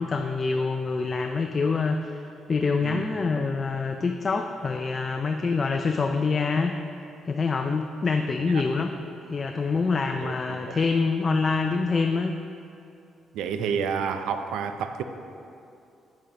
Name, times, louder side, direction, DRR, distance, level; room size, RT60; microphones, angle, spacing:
voice 1, 0.0-6.7 7.3-9.0 9.3-12.4, left 4 dB, 35° left, 5 dB, 0.4 m, -26 dB
voice 2, 13.3-15.0, right 6 dB, 90° right, 8 dB, 0.4 m, -29 dB
8.9 x 8.2 x 3.0 m, 2.6 s
cardioid pair, 90°, 0 cm